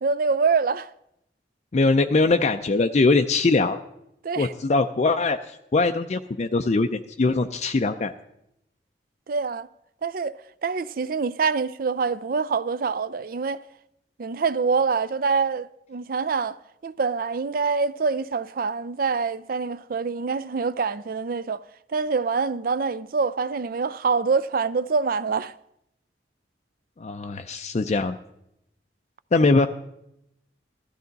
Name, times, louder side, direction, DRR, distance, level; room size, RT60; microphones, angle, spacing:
voice 1, 0.0-0.9 4.2-4.5 9.3-9.7 10.0-10.3 10.6-13.6 14.2-16.6 16.8-21.6 21.9-25.5, right 5 dB, 55° right, 0.4 m, -25 dB
voice 2, 1.7-3.8 4.4-8.1 27.0-28.2 29.3-29.7, left 3 dB, 40° left, 0.4 m, -22 dB
15.0 x 13.0 x 4.0 m
head